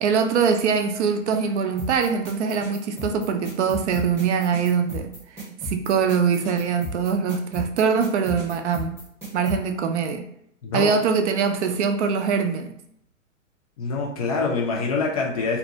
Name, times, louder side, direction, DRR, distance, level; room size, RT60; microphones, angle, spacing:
voice 1, 0.0-5.1 5.6-9.0 9.3-10.3 10.7-12.7, right 6 dB, 60° right, 7 dB, 0.5 m, -23 dB
sound 1, 1.8-9.6, equal, 5° right, 0.8 m, -34 dB
voice 2, 10.6-10.9 13.8-15.6, left 4 dB, 30° left, -1 dB, 0.4 m, -25 dB
2.5 x 2.2 x 2.8 m, 0.72 s
hypercardioid pair, 120°, 40 cm